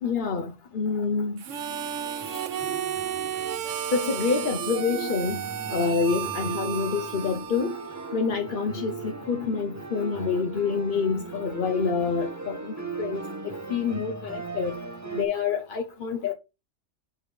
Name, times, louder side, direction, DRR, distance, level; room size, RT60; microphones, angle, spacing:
voice 1, 0.0-1.4 3.9-5.4 5.7-7.8 8.1-14.8 15.1-16.3, left 5 dB, 45° left, 0.9 m, -27 dB
Harmonica, 1.4-8.3, right 10 dB, 85° right, 1.1 m, -33 dB
sound 1, 1.5-15.2, right 4 dB, 15° right, 0.9 m, -38 dB
8.6 x 3.5 x 5.0 m
omnidirectional pair, 1.3 m